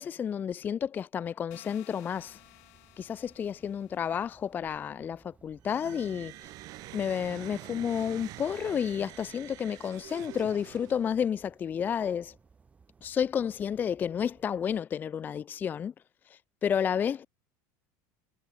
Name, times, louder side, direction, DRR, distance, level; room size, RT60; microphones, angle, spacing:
voice 1, 0.0-2.4 3.0-6.5 6.9-12.3 13.0-15.9 16.3-17.3, left 8 dB, 20° left, 0.5 m, -31 dB
sound 1, 1.5-4.4, left 24 dB, 80° left, 3.1 m, -56 dB
sound 2, 2.1-14.7, right 5 dB, 15° right, 6.1 m, -61 dB
sound 3, 5.6-11.3, right 18 dB, 50° right, 2.5 m, -46 dB
cardioid pair, 150°, 8 cm